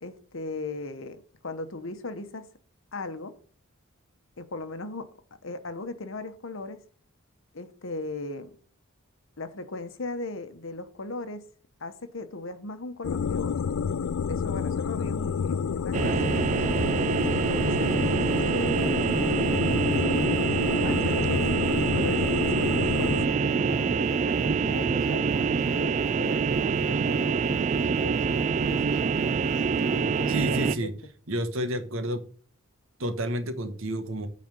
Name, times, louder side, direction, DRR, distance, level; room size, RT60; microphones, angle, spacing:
voice 1, 0.0-2.5 2.9-3.3 4.4-5.1 5.4-6.8 7.5-8.6 9.4-11.4 11.8-13.6 14.3-16.6 17.3-19.0 20.7-22.2 22.5-29.1 29.9-30.9, left 2 dB, 65° left, 1.1 m, -38 dB
sound 1, 13.0-23.3, left 6 dB, 85° left, 0.4 m, -29 dB
sound 2, 15.9-30.8, right 5 dB, 35° right, 0.4 m, -25 dB
voice 2, 30.3-30.9 31.3-32.3 33.0-34.3, equal, 70° right, 1.3 m, -30 dB
9.1 x 4.3 x 6.9 m
head